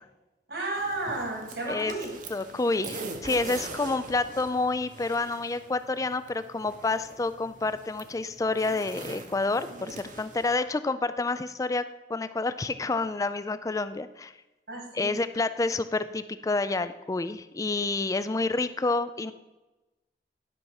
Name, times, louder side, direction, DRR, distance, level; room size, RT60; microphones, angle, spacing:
voice 1, 0.5-2.1 14.7-15.2, right 2 dB, 70° right, 2 dB, 2.1 m, -33 dB
sound 1, 0.8-10.6, right 3 dB, 45° right, 0.9 m, -43 dB
voice 2, 2.3-11.8 12.1-14.3 15.0-19.3, left 3 dB, 20° left, 13 dB, 0.3 m, -28 dB
11.5 x 5.7 x 4.8 m, 1.1 s
head